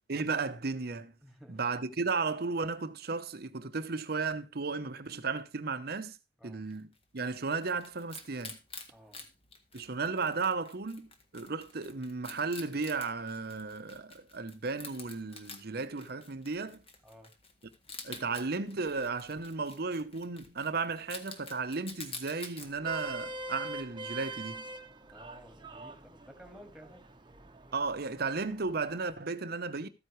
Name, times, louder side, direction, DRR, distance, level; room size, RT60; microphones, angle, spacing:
voice 1, 0.1-1.1 1.5-6.2 6.4-6.9 7.1-8.6 9.7-16.8 18.0-24.7 27.7-29.9, right 4 dB, 60° right, 0.9 m, -34 dB
voice 2, 1.2-1.6 6.4-6.7 8.9-9.2 17.0-17.3 25.1-27.1, equal, ahead, 2.1 m, -54 dB
Wild animals, 6.7-22.7, left 4 dB, 35° left, 1.6 m, -49 dB
Vehicle horn car horn honking, 22.6-29.0, right 2 dB, 25° right, 1.0 m, -44 dB
13.5 x 9.3 x 3.2 m
head